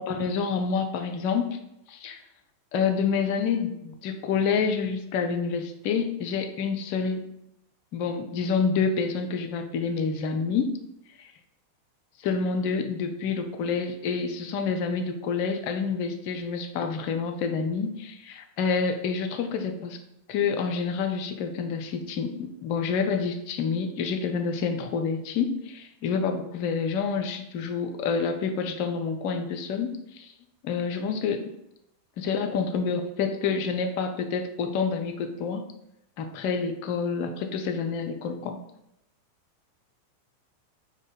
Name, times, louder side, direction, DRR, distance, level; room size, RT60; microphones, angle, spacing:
voice 1, 0.0-1.5 1.9-2.2 2.7-7.2 7.9-10.8 12.2-20.0 20.3-29.9 30.2-30.3 30.6-31.5 32.2-35.6 36.2-38.6, left 5 dB, 45° left, 6 dB, 0.5 m, -28 dB
3.5 x 2.2 x 4.2 m, 0.82 s
figure-of-eight pair, 90°, 0 cm